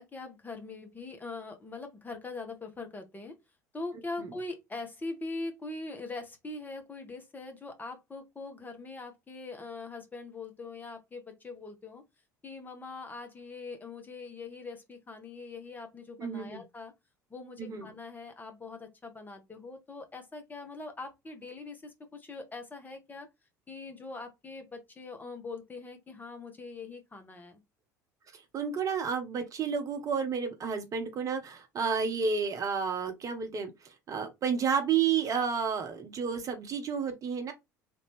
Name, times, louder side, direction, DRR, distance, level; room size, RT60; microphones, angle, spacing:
voice 1, 0.0-3.4 3.7-12.0 12.4-16.9 17.3-23.3 23.7-27.6, left 3 dB, 20° left, 1.1 m, -42 dB
voice 2, 16.2-16.6 17.6-17.9 28.3-37.5, right 6 dB, 35° right, 0.9 m, -31 dB
3.4 x 2.7 x 3.4 m
figure-of-eight pair, 65°, 10 cm